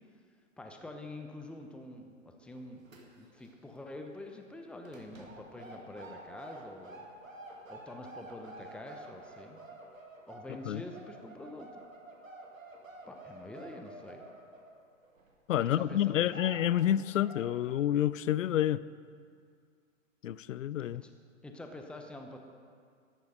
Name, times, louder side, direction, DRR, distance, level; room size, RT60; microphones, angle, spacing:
voice 1, 0.6-7.1 7.7-9.6 10.3-11.8 13.1-14.2 15.6-16.3 20.9-21.1 21.4-22.4, left 1 dB, 5° left, 0.9 m, -46 dB
sound 1, 2.5-3.5 3.7-4.0 4.8-15.3 15.8-15.9 16.2-16.8 17.2-17.6, right 2 dB, 90° right, 2.1 m, -50 dB
voice 2, 15.5-18.8 20.2-21.0, left 11 dB, 75° left, 0.5 m, -29 dB
13.5 x 10.5 x 5.1 m
hypercardioid pair, 115°, 39 cm